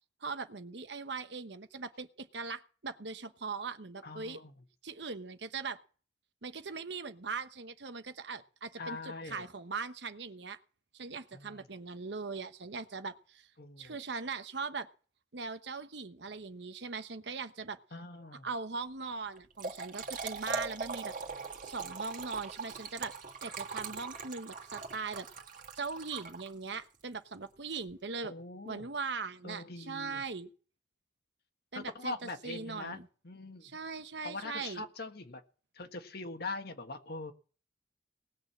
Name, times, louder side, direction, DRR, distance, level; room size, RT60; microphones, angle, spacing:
voice 1, 0.2-4.4 4.8-5.8 6.4-10.6 10.9-13.5 13.8-14.9 15.3-17.8 18.4-21.1 21.6-23.1 23.4-25.3 25.7-28.3 28.6-30.5 31.7-32.2 32.4-33.1 33.6-34.8, right 4 dB, 65° right, 10 dB, 1.1 m, -40 dB
voice 2, 4.0-4.5 8.8-9.4 11.3-11.7 13.6-14.0 17.9-18.5 28.2-28.9 29.4-30.2 31.7-33.0 33.2-33.8 34.2-35.4 35.7-37.3, left 3 dB, 55° left, 6 dB, 1.7 m, -42 dB
Trickle dribble / Fill (with liquid), 19.4-26.8, right 4 dB, 45° right, 2.1 m, -41 dB
19.0 x 6.6 x 7.6 m, 0.40 s
head